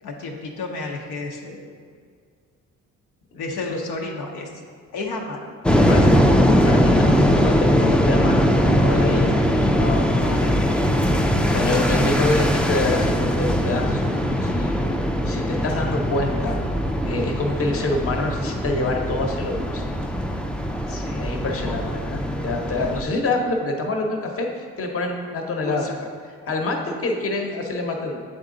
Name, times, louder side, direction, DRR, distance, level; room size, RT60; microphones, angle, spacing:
voice 1, 0.0-1.6 3.3-4.5 4.9-5.5 5.7-6.2 9.3-9.5 10.2-10.7 20.9-22.0 25.6-25.9, left 3 dB, 90° left, -1 dB, 0.8 m, -32 dB
sound 1, 5.6-23.0, equal, 5° left, 0.3 m, -20 dB
voice 2, 6.6-8.5 8.8-9.3 9.7-10.1 11.1-14.0 14.4-14.8 15.2-16.6 17.0-19.8 21.2-26.1 26.4-28.2, left 2 dB, 50° left, 2 dB, 0.9 m, -26 dB
7.9 x 3.8 x 3.8 m, 2.1 s
cardioid pair, 90°, 30 cm